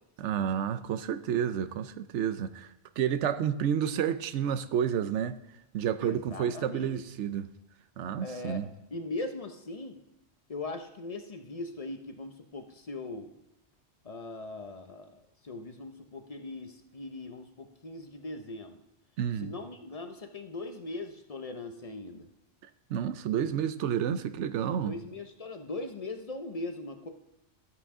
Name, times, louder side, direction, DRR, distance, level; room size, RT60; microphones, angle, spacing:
voice 1, 0.2-2.7 3.0-5.4 5.7-7.5 8.0-8.7 19.2-19.5 22.9-24.9, right 9 dB, 80° right, 0.9 m, -30 dB
voice 2, 6.0-7.0 8.2-8.6 8.9-10.0 10.5-13.3 14.0-18.8 19.4-22.3 24.8-27.1, left 2 dB, 35° left, 0.7 m, -40 dB
13.0 x 7.7 x 3.7 m
omnidirectional pair, 1.2 m